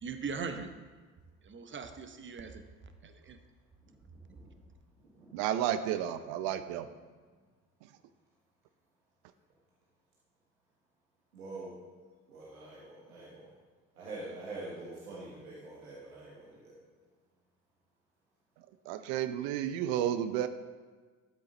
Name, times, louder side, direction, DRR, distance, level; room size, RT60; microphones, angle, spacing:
voice 1, 0.0-0.7 1.4-2.6 3.0-3.4, right 5 dB, 25° right, 9 dB, 1.0 m, -40 dB
voice 2, 5.3-6.9 18.9-20.5, right 11 dB, 60° right, 11 dB, 0.7 m, -32 dB
voice 3, 11.3-11.7 12.3-13.5 14.0-16.7, right 2 dB, 85° right, -6 dB, 1.9 m, -45 dB
12.5 x 7.3 x 4.0 m, 1.4 s
figure-of-eight pair, 60°, 43 cm